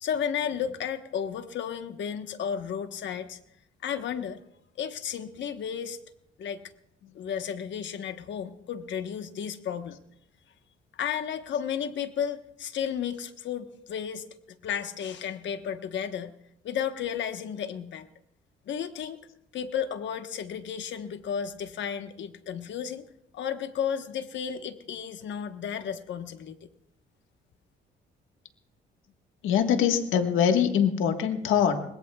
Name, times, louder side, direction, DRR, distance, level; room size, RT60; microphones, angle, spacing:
voice 1, 0.0-3.4 3.8-4.4 4.8-6.0 6.4-6.6 7.1-10.0 11.0-14.3 14.6-16.3 16.6-18.1 18.7-19.2 19.5-23.1 23.3-26.7, left 8 dB, 65° left, 8 dB, 1.2 m, -33 dB
voice 2, 29.4-31.8, left 8 dB, 85° left, 6 dB, 1.5 m, -23 dB
23.5 x 20.5 x 2.3 m, 0.77 s
cardioid pair, 90°, 20 cm